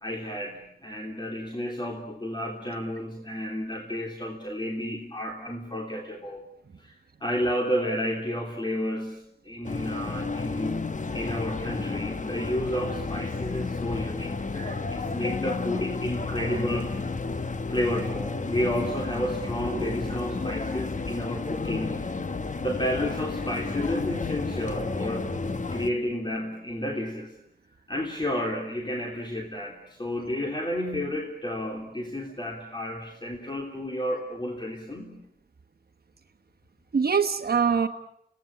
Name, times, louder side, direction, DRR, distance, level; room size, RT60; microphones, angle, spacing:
voice 1, 0.0-6.4 6.8-6.9 7.2-10.8 11.1-16.9 17.3-17.4 17.7-22.0 22.6-25.3 25.7-27.3 27.9-35.1, equal, 25° left, 1 dB, 3.2 m, -31 dB
sound 1, 9.6-25.9, left 3 dB, 45° left, 1.2 m, -31 dB
voice 2, 36.9-37.9, right 6 dB, 60° right, 7 dB, 1.2 m, -24 dB
27.0 x 18.0 x 8.7 m, 0.79 s
wide cardioid pair, 70°, 18 cm